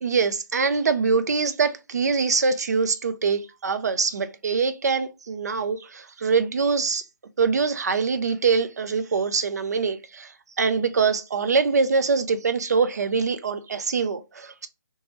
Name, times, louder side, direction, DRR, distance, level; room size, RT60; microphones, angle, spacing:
voice 1, 0.0-7.0 7.4-10.3 10.6-14.7, right 5 dB, 50° right, 0.4 m, -24 dB
2.9 x 2.2 x 3.1 m
hypercardioid pair, 175°, 11 cm